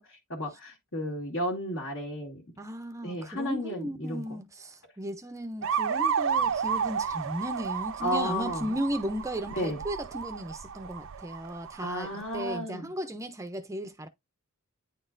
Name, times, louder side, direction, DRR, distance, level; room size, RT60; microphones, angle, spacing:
voice 1, 0.0-2.4 3.0-4.2 8.0-8.7 9.5-9.8 11.8-12.9, equal, 60° left, 1.9 m, -33 dB
voice 2, 2.6-14.1, right 1 dB, 15° right, 0.5 m, -35 dB
sound 1, 5.6-12.6, right 7 dB, 60° right, 0.5 m, -32 dB
9.5 x 4.1 x 2.5 m
head